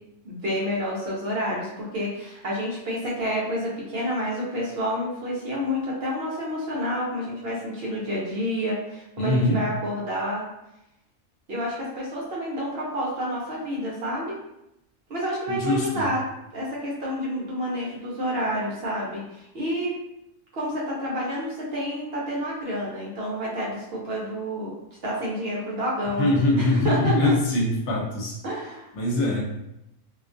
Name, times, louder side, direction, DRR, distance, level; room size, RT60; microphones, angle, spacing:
voice 1, 0.2-10.4 11.5-14.4 15.1-16.2 16.5-20.0 20.5-24.8 25.0-27.3 28.4-28.9, equal, 60° right, -4 dB, 0.7 m, -29 dB
voice 2, 9.2-9.6 15.5-16.0 26.2-28.4 28.9-29.4, left 1 dB, 70° left, -2 dB, 0.9 m, -22 dB
2.3 x 2.2 x 2.5 m, 0.85 s
omnidirectional pair, 1.3 m